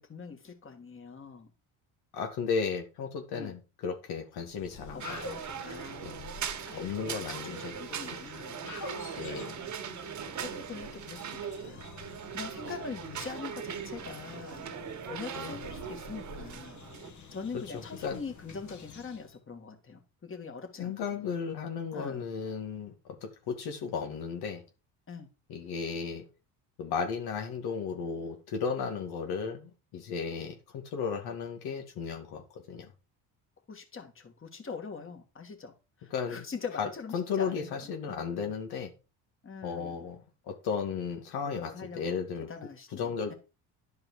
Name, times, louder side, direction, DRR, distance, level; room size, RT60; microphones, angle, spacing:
voice 1, 0.0-1.5 3.3-3.5 5.1-5.2 5.6-6.3 6.7-7.1 7.4-8.5 9.5-9.7 10.3-14.7 15.1-16.8 17.3-21.4 21.9-22.2 25.1-25.3 33.7-35.7 36.0-38.5 39.4-40.0 41.4-42.2 42.5-43.3, left 5 dB, 30° left, 2.4 m, -43 dB
voice 2, 2.1-5.2 6.0-6.2 6.8-7.8 8.1-8.2 9.2-9.6 15.3-15.6 17.5-17.6 18.0-18.2 20.8-22.9 23.2-24.6 25.5-26.3 26.8-32.9 36.1-36.5 36.8-36.9 37.1-38.9 39.6-40.2 40.5-42.5 42.9-43.3, left 6 dB, 70° left, 2.0 m, -34 dB
sound 1, 4.5-19.4, left 4 dB, 45° left, 2.0 m, -48 dB
sound 2, 5.0-17.1, right 7 dB, 45° right, 1.4 m, -40 dB
11.0 x 4.8 x 4.8 m
supercardioid pair, 75°, 39 cm